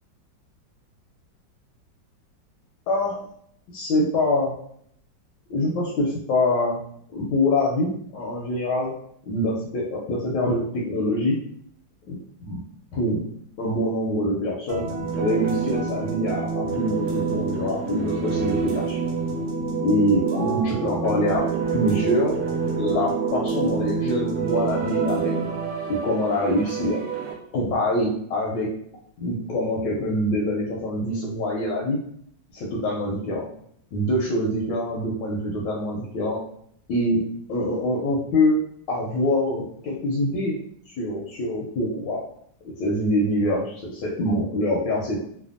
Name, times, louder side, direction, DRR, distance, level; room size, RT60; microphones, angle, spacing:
voice 1, 2.9-3.2 3.7-4.5 5.5-6.8 7.1-8.9 9.3-11.4 12.1-12.2 12.4-12.6 12.9-13.2 13.6-14.9 15.2-19.0 19.8-22.4 22.7-25.6 25.9-27.0 27.5-28.7 29.2-32.0 32.5-33.5 33.9-36.4 36.9-37.2 37.5-38.6 38.9-40.5 40.9-42.2 42.6-45.2, left 1 dB, 75° left, -3 dB, 1.1 m, -25 dB
sound 1, 14.7-27.3, right 5 dB, 80° right, 1.3 m, -27 dB
3.3 x 2.1 x 2.4 m, 0.68 s
omnidirectional pair, 2.1 m